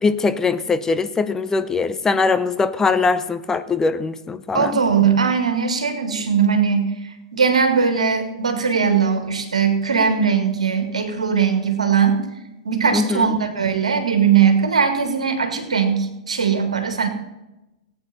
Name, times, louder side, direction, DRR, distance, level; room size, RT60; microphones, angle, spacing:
voice 1, 0.0-4.8 12.9-13.3, left 4 dB, 15° left, 12 dB, 0.6 m, -21 dB
voice 2, 4.5-12.2 12.7-17.1, right 6 dB, 75° right, 6 dB, 1.9 m, -19 dB
17.5 x 9.0 x 4.1 m, 0.97 s
figure-of-eight pair, 100°, 4 cm